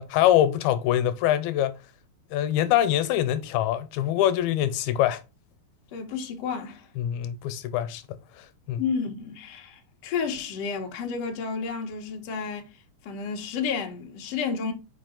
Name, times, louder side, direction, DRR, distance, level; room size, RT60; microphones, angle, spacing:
voice 1, 0.0-1.8 2.3-5.2 7.0-8.8, left 12 dB, 90° left, 2.6 m, -24 dB
voice 2, 5.9-6.9 8.8-12.7 13.0-14.7, left 5 dB, 60° left, 1.8 m, -31 dB
5.9 x 4.7 x 3.7 m
omnidirectional pair, 4.2 m